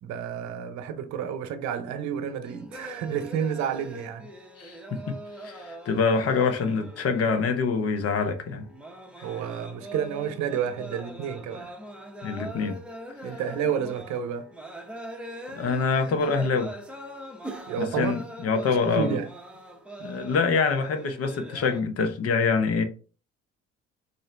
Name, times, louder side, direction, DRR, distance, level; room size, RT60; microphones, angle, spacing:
voice 1, 0.0-4.3 9.2-11.7 13.2-14.5 17.7-18.2 18.7-19.3, right 8 dB, 70° right, 0.7 m, -30 dB
sound 1, 2.4-21.8, right 1 dB, 5° right, 0.8 m, -42 dB
voice 2, 4.6-8.7 12.2-12.8 15.5-16.7 17.8-19.2 20.0-22.8, left 5 dB, 50° left, 0.8 m, -25 dB
3.8 x 2.7 x 3.2 m
supercardioid pair, 75°, 30 cm